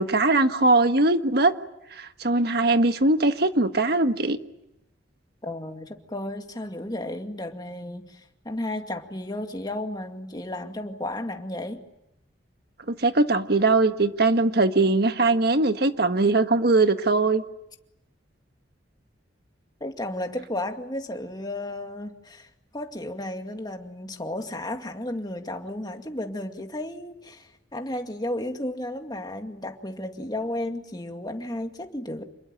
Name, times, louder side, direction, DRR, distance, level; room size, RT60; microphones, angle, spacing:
voice 1, 0.0-1.5 2.0-4.4 12.9-17.4, right 2 dB, 55° right, 8 dB, 1.5 m, -21 dB
voice 2, 5.4-11.8 19.8-32.2, left 1 dB, 20° left, 4 dB, 2.2 m, -33 dB
28.0 x 21.0 x 9.0 m, 0.86 s
head